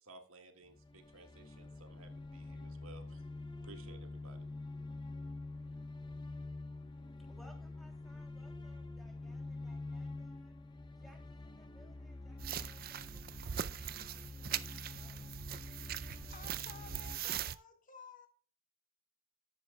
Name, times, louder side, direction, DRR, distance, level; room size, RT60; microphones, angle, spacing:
voice 1, 0.0-3.3 3.6-4.5, right 3 dB, 80° right, 5 dB, 1.7 m, -57 dB
sound 1, 0.7-17.2, left 2 dB, 20° left, 0.6 m, -47 dB
voice 2, 7.3-10.5 11.0-14.7 14.9-15.2, equal, ahead, 2 dB, 2.7 m, -65 dB
sound 2, 12.4-17.6, right 10 dB, 45° right, 0.4 m, -41 dB
voice 3, 16.0-18.3, left 3 dB, 40° left, 5 dB, 1.6 m, -54 dB
13.0 x 10.5 x 2.2 m, 0.41 s
head